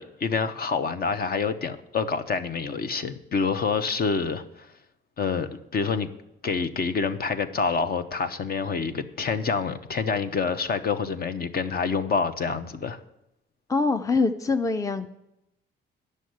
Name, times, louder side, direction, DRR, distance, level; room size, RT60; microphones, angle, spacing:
voice 1, 0.0-4.7 5.2-6.1 6.4-13.0, left 5 dB, 50° left, 0.9 m, -27 dB
voice 2, 13.7-15.1, left 3 dB, 15° left, 0.6 m, -24 dB
10.0 x 6.5 x 7.9 m
cardioid pair, 90°, 20 cm